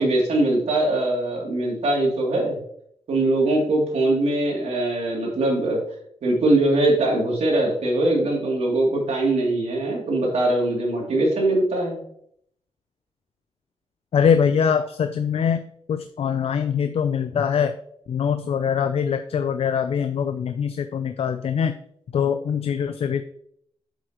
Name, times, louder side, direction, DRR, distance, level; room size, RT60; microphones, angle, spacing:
voice 1, 0.0-2.6 3.1-5.8 6.2-12.0, right 2 dB, 80° right, -2 dB, 2.9 m, -21 dB
voice 2, 14.1-17.8 18.1-21.8 22.1-23.2, left 7 dB, 65° left, 9 dB, 0.5 m, -23 dB
8.0 x 7.7 x 3.1 m, 0.69 s
wide cardioid pair, 115°, 11 cm